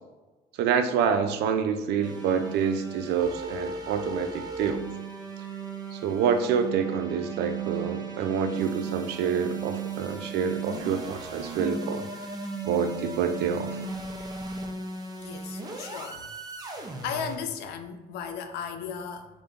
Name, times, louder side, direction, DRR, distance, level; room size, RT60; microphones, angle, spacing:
voice 1, 0.6-4.8 5.9-12.1 12.6-13.8, right 7 dB, 80° right, 8 dB, 0.5 m, -27 dB
sound 1, 2.0-17.4, right 4 dB, 25° right, 0.6 m, -36 dB
voice 2, 15.2-16.2 17.0-19.3, left 7 dB, 75° left, 7 dB, 0.5 m, -35 dB
3.7 x 2.6 x 3.5 m, 1.1 s
cardioid pair, 110°, 17 cm